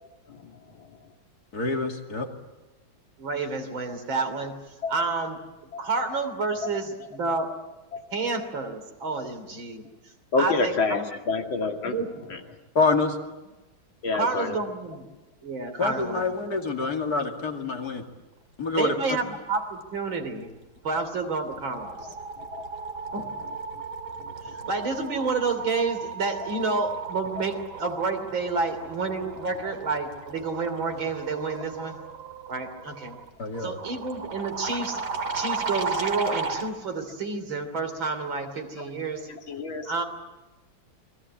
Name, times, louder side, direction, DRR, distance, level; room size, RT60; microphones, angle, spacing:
voice 1, 1.5-2.3 12.7-13.2 15.8-18.0 18.6-19.2 33.4-33.8, left 3 dB, 50° left, 3 dB, 3.0 m, -26 dB
voice 2, 3.2-5.4 5.8-7.5 8.1-11.1 11.8-12.3 14.1-15.1 15.4-16.2 18.7-20.5 20.8-22.1 23.1-23.3 24.4-32.0 32.5-33.2 33.6-35.0 35.3-39.3 39.9-40.0, right 4 dB, 80° right, 6 dB, 3.9 m, -30 dB
voice 3, 10.3-12.0 12.3-12.4 14.0-14.6 22.5-22.6 24.2-24.3 39.5-39.9, left 3 dB, 85° left, 3 dB, 3.1 m, -27 dB
sound 1, 20.9-21.2 21.5-36.7, right 4 dB, 55° right, 2.7 m, -35 dB
29.0 x 22.0 x 8.7 m, 1.1 s
omnidirectional pair, 2.1 m